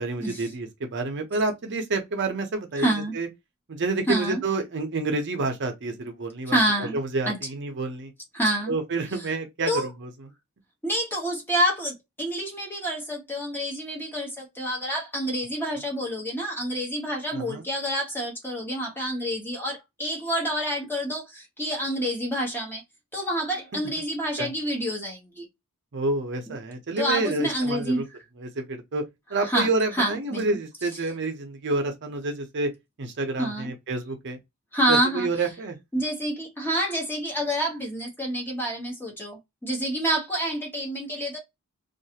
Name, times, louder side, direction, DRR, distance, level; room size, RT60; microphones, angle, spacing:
voice 1, 0.0-3.3 3.7-8.1 8.7-10.3 17.3-17.7 23.7-23.9 24.4-24.5 25.9-28.0 28.4-29.0 29.3-32.7 33.0-34.4 34.9-35.8, right 3 dB, 55° right, 0.6 m, -29 dB
voice 2, 2.8-3.1 4.1-4.4 6.5-7.0 7.3-7.4 8.3-8.7 9.7-9.9 10.8-22.8 23.1-25.4 27.0-28.0 29.4-30.4 33.4-33.7 34.7-35.3 35.9-41.4, right 1 dB, 10° left, 0.9 m, -28 dB
2.5 x 2.3 x 2.8 m
head